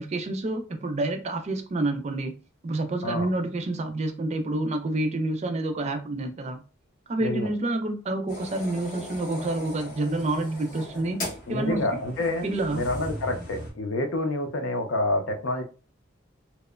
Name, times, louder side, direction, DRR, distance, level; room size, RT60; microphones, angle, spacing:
voice 1, 0.0-2.3 2.6-6.6 7.1-11.2 11.5-12.0 12.4-12.8, right 2 dB, 35° right, 0.4 m, -28 dB
sound 1, 8.3-13.7, left 1 dB, 45° left, 1.4 m, -39 dB
voice 2, 11.5-15.6, left 2 dB, 80° left, 0.5 m, -28 dB
2.9 x 2.0 x 2.3 m
head